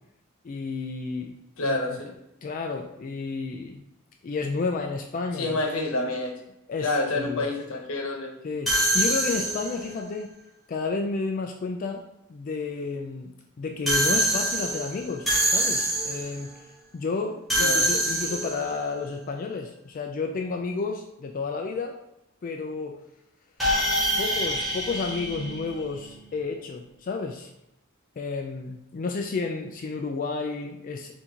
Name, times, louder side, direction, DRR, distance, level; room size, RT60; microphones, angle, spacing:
voice 1, 0.4-1.3 1.6-2.0 2.4-3.8 4.2-5.6 6.7-7.5 8.4-10.3 10.7-12.0 12.3-13.3 13.6-16.5 16.9-21.9 22.4-23.0 24.2-27.5 28.2-31.1, left 4 dB, 40° left, 3 dB, 0.3 m, -31 dB
voice 2, 1.6-2.1 5.4-6.3 6.8-8.4 17.6-17.8, left 2 dB, 70° left, 0 dB, 0.9 m, -28 dB
sound 1, 8.7-9.9 13.9-16.4 17.5-18.8 23.6-26.1, right 1 dB, ahead, 1.0 m, -25 dB
4.4 x 2.6 x 3.6 m, 0.85 s
head